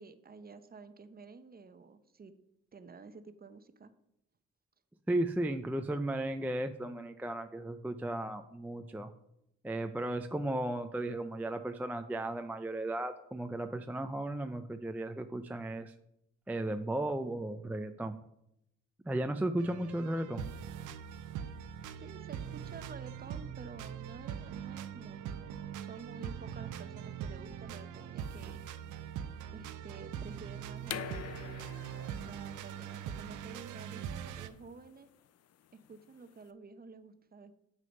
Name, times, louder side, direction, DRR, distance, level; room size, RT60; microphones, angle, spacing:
voice 1, 0.0-2.3 2.7-3.9 22.0-28.6 29.5-35.1 35.7-37.5, right 4 dB, 30° right, 10 dB, 0.8 m, -51 dB
voice 2, 5.1-9.1 9.6-15.9 16.5-18.2 19.1-20.5, right 1 dB, 5° right, 7 dB, 0.4 m, -35 dB
sound 1, 19.6-34.5, right 9 dB, 85° right, 0.7 m, -42 dB
sound 2, 30.8-36.4, left 10 dB, 55° left, 0.5 m, -46 dB
7.6 x 6.2 x 5.3 m, 0.82 s
cardioid pair, 90°, 30 cm